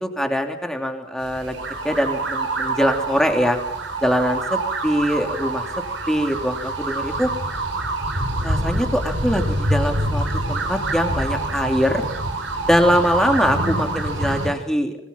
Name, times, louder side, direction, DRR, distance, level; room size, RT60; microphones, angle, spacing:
voice 1, 0.0-1.6 1.8-3.6 4.0-5.6 6.1-7.3 8.4-12.1 12.7-15.0, equal, 5° left, 4 dB, 3.1 m, -22 dB
sound 1, 1.2-14.5, right 2 dB, 75° right, 7.0 m, -26 dB
26.5 x 24.0 x 5.9 m, 0.75 s
head